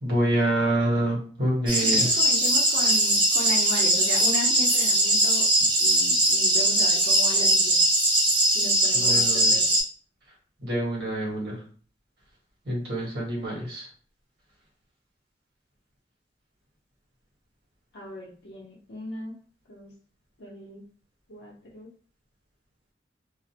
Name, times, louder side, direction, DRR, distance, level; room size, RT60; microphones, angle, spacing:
voice 1, 0.0-2.1 8.9-9.5 10.6-11.6 12.6-13.9, right 1 dB, 70° right, -4 dB, 1.2 m, -26 dB
sound 1, 1.7-9.8, right 1 dB, 30° right, 0.7 m, -21 dB
voice 2, 1.8-5.4 5.8-7.8 8.5-9.6 17.9-19.4 19.7-19.9 20.4-20.8 21.3-21.9, left 1 dB, 80° left, -4 dB, 0.6 m, -36 dB
2.5 x 2.0 x 2.8 m, 0.42 s
head